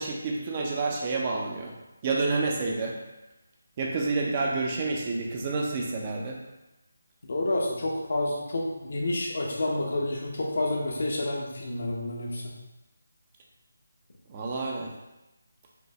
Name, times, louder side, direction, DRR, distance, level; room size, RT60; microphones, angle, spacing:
voice 1, 0.0-1.7 2.0-2.9 3.8-6.4 14.3-14.9, right 3 dB, 30° right, -1 dB, 0.6 m, -29 dB
voice 2, 7.2-12.5, left 2 dB, 60° left, -1 dB, 1.0 m, -29 dB
5.0 x 2.6 x 3.3 m, 1.0 s
figure-of-eight pair, 160°, 0 cm